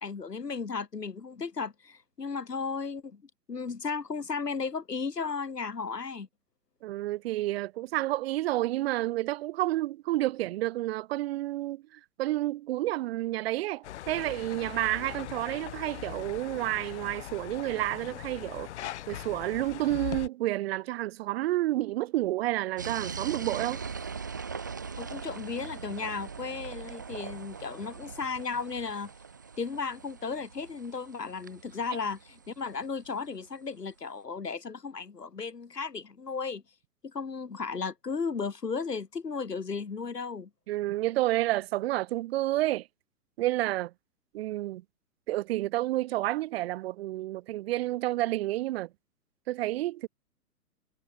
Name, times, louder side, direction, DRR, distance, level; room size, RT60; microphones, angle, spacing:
voice 1, 0.0-6.3 25.0-29.1 29.6-36.6 37.0-40.5, left 5 dB, 80° left, 2.0 m, -35 dB
voice 2, 6.8-18.7 19.1-23.8 40.7-42.9 43.4-43.9 44.3-44.8 45.3-48.9 49.5-50.1, right 16 dB, 40° right, 2.9 m, -30 dB
sound 1, 13.8-20.3, left 12 dB, 45° left, 2.2 m, -40 dB
sound 2, 22.8-33.5, right 5 dB, 15° right, 0.4 m, -41 dB
figure-of-eight pair, 120°, 47 cm